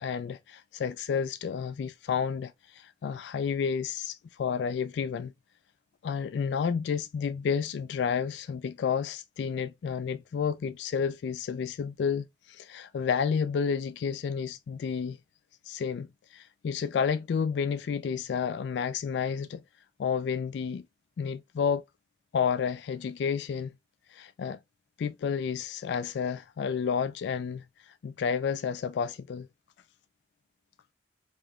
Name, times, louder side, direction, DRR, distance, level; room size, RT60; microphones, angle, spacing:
voice 1, 0.0-5.3 6.0-15.2 15.7-19.6 20.0-20.8 21.2-21.8 22.3-23.7 24.1-24.6 25.0-29.5, left 6 dB, 75° left, 0.3 m, -31 dB
5.0 x 3.0 x 2.3 m
head